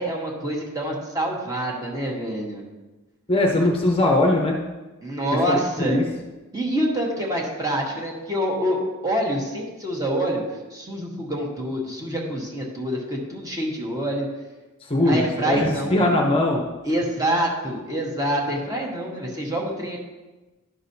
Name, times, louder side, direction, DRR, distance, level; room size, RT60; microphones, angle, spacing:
voice 1, 0.0-2.6 5.0-6.0 6.5-10.4 10.7-14.3 15.0-16.1 16.9-20.0, right 1 dB, 15° right, -2 dB, 1.3 m, -26 dB
voice 2, 3.3-4.6 5.5-6.0 14.9-16.6, left 1 dB, 25° left, 0 dB, 0.7 m, -20 dB
11.0 x 6.1 x 2.7 m, 1.2 s
head